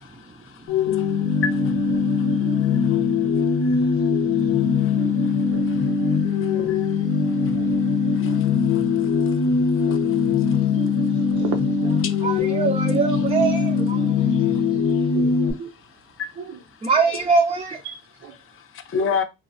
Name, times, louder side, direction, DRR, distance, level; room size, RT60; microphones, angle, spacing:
voice 1, 0.3-4.0 4.4-11.4 12.0-12.3 14.0-14.6 14.9-15.1 16.2-16.6 18.4-19.2, left 6 dB, 45° left, 0.5 m, -35 dB
sound 1, 0.7-15.5, left 5 dB, 80° left, 0.7 m, -21 dB
voice 2, 3.7-4.1 4.9-5.0 6.4-6.5 6.9-7.0 7.4-7.8 11.4-11.5 12.2-14.7 16.8-17.8, right 4 dB, 20° right, 0.4 m, -25 dB
voice 3, 6.4-6.8 7.6-7.7 9.8-10.0 11.4-12.0 14.6-14.7 15.1-15.7 16.4-16.6 17.1-17.2 17.8-18.4 18.9-19.2, right 5 dB, 90° right, 0.7 m, -35 dB
3.0 x 2.1 x 2.6 m
cardioid pair, 90°, 30 cm